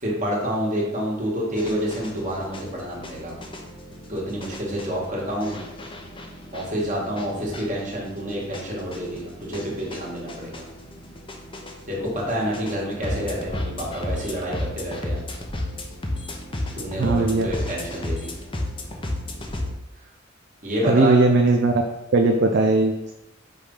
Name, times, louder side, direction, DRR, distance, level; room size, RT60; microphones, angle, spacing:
voice 1, 0.0-3.4 4.1-5.6 6.5-10.6 11.9-15.2 16.7-18.3 20.6-21.2, equal, 40° right, -4 dB, 1.8 m, -28 dB
sound 1, 1.6-19.7, left 1 dB, 25° left, 0.7 m, -34 dB
voice 2, 17.0-17.5 20.8-21.8 22.1-23.1, right 3 dB, 55° right, 2 dB, 0.5 m, -18 dB
5.3 x 3.4 x 5.5 m, 0.91 s
head